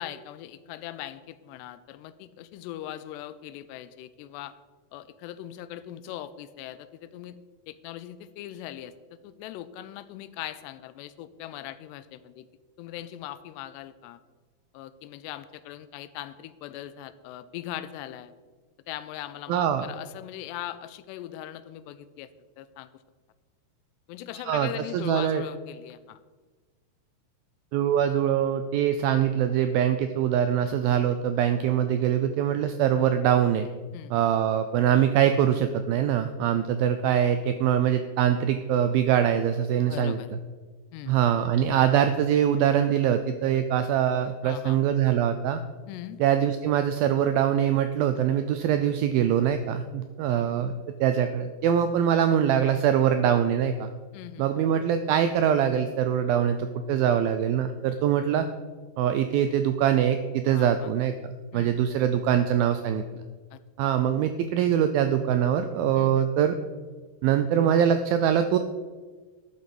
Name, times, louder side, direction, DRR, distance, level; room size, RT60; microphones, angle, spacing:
voice 1, 0.0-4.5 4.9-7.4 7.7-8.9 9.2-12.5 12.8-14.2 14.7-18.3 18.9-22.3 22.6-22.9 24.1-26.2 33.9-34.2 39.9-40.3 40.9-41.2 44.4-44.8 45.9-46.2 50.3-50.4 54.1-54.5 60.5-60.9 61.5-61.9 63.5-63.6 65.9-66.3, left 12 dB, 90° left, 14 dB, 2.8 m, -40 dB
voice 2, 19.5-19.9 24.5-25.4 27.7-33.7 34.1-40.2 41.1-45.6 46.2-50.7 51.0-53.9 54.4-58.5 59.0-63.0 63.8-66.6 67.2-68.6, right 9 dB, 85° right, 9 dB, 2.1 m, -23 dB
13.0 x 9.7 x 5.3 m, 1.4 s
omnidirectional pair, 4.9 m